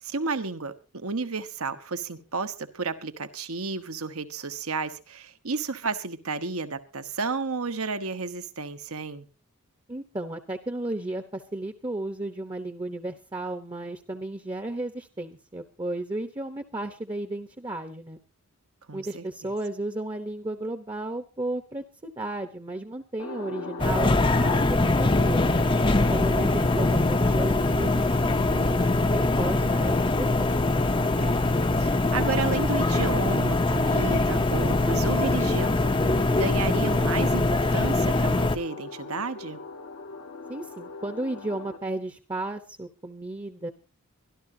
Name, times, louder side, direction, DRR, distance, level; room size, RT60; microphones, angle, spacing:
voice 1, 0.0-9.3 18.9-19.2 31.2-35.8 36.4-39.6, right 4 dB, 75° right, 9 dB, 1.3 m, -32 dB
voice 2, 9.9-18.2 18.9-25.5 26.1-30.5 40.5-43.7, right 2 dB, 20° right, 8 dB, 0.9 m, -34 dB
sound 1, 23.2-41.8, left 3 dB, 90° left, 1.6 m, -38 dB
sound 2, 23.8-38.6, left 2 dB, 25° left, 0.7 m, -23 dB
24.0 x 12.5 x 2.8 m, 0.30 s
head